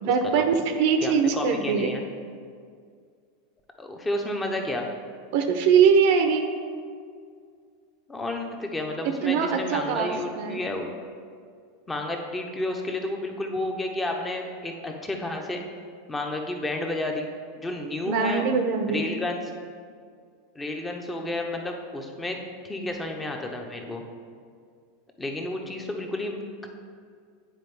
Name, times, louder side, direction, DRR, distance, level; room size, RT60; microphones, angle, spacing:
voice 1, 0.0-1.9 5.3-6.5 9.0-10.6 18.0-19.0, right 6 dB, 60° right, 6 dB, 0.6 m, -22 dB
voice 2, 1.0-2.0 3.8-4.9 8.1-10.9 11.9-15.6 16.1-17.3 17.6-18.4 18.9-19.4 20.5-22.4 22.6-24.0 25.2-26.7, left 2 dB, 15° left, 3 dB, 0.9 m, -31 dB
9.0 x 4.3 x 3.3 m, 2.1 s
hypercardioid pair, 90°, 0 cm